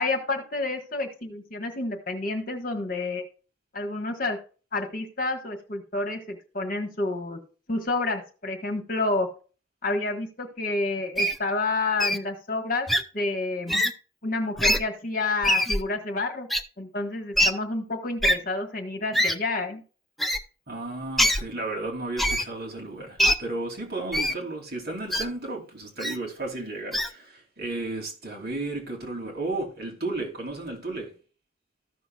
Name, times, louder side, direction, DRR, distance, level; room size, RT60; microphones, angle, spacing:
voice 1, 0.0-3.2 3.7-4.4 4.7-7.4 7.7-9.3 9.8-12.9 13.1-13.7 14.2-16.5 16.8-19.8, left 2 dB, 45° left, 1.5 m, -29 dB
Wild animals, 11.2-11.4 12.0-12.2 12.9-13.0 13.7-13.9 14.6-14.8 15.4-15.8 16.5-16.6 17.4-17.5 18.2-18.4 19.1-19.4 20.2-20.4 21.2-21.4 22.2-22.5 23.2-23.4 24.1-24.4 25.1-25.2 26.0-26.2 26.9-27.1, equal, ahead, 0.5 m, -22 dB
voice 2, 20.7-31.1, right 2 dB, 55° right, 2.8 m, -33 dB
14.5 x 6.1 x 2.4 m
head